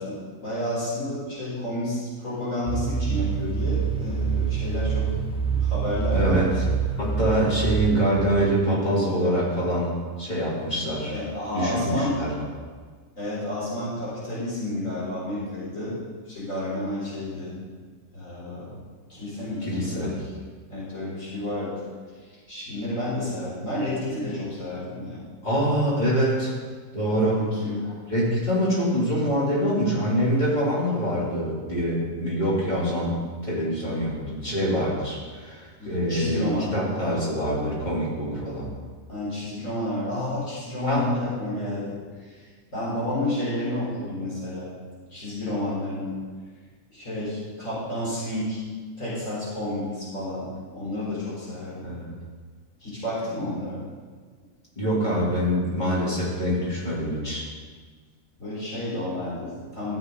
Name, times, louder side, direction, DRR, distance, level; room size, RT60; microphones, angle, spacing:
voice 1, 0.0-5.1 5.5-6.4 11.1-12.2 13.2-15.9 16.3-17.5 18.1-18.7 19.1-20.3 20.7-21.7 22.5-25.2 27.3-28.0 33.9-34.2 35.8-36.8 39.1-42.4 42.7-44.7 45.1-46.2 46.9-48.6 49.0-51.9 52.8-53.8 58.4-59.9, left 1 dB, 70° left, -8 dB, 4.5 m, -30 dB
sound 1, 2.7-8.1, right 6 dB, 10° right, 0.4 m, -26 dB
voice 2, 6.1-6.6 7.0-9.9 10.2-11.2 11.5-12.3 19.6-20.1 25.4-26.6 26.9-27.4 28.1-33.2 33.4-36.4 36.7-38.7 40.9-41.1 51.8-52.1 54.8-57.4, equal, 30° left, -7 dB, 3.5 m, -25 dB
14.0 x 8.1 x 4.0 m, 1.5 s
omnidirectional pair, 1.4 m